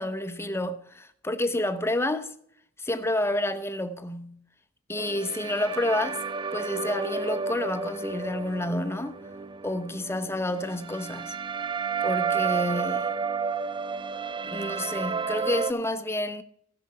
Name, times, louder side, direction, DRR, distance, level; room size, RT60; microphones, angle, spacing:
voice 1, 0.0-2.3 2.8-4.4 4.9-6.2 6.5-9.2 9.6-11.3 12.0-13.1 14.4-16.4, left 1 dB, 10° left, 0.8 m, -29 dB
sound 1, 5.0-15.7, right 5 dB, 20° right, 0.4 m, -31 dB
16.0 x 6.9 x 4.8 m
head